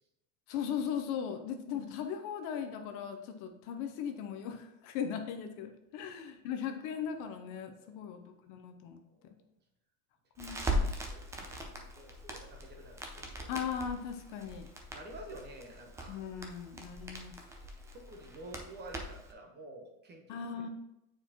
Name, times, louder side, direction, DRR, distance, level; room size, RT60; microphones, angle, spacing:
voice 1, 0.5-9.3 10.4-10.9 13.5-14.7 16.1-17.3 20.3-20.7, left 7 dB, 50° left, 6 dB, 0.7 m, -38 dB
voice 2, 9.1-9.4 10.6-13.5 14.8-16.2 17.9-20.6, right 1 dB, 25° right, 2 dB, 0.9 m, -50 dB
Crackle, 10.4-19.3, equal, 10° right, 0.4 m, -40 dB
7.8 x 4.5 x 2.9 m, 0.87 s
supercardioid pair, 145°, 41 cm